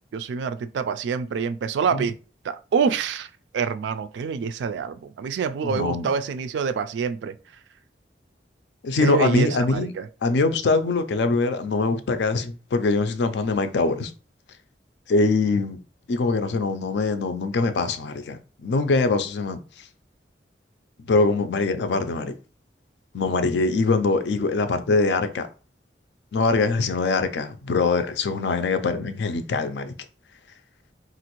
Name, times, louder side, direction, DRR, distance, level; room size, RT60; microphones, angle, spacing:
voice 1, 0.1-2.1 2.4-3.3 3.5-7.4 9.0-10.1, right 6 dB, 85° right, 0.3 m, -26 dB
voice 2, 5.6-6.1 8.8-9.9 10.2-14.1 15.1-15.8 16.1-19.6 21.1-22.3 23.1-25.5 26.3-29.9, left 3 dB, 75° left, 0.4 m, -23 dB
3.0 x 2.5 x 3.0 m
head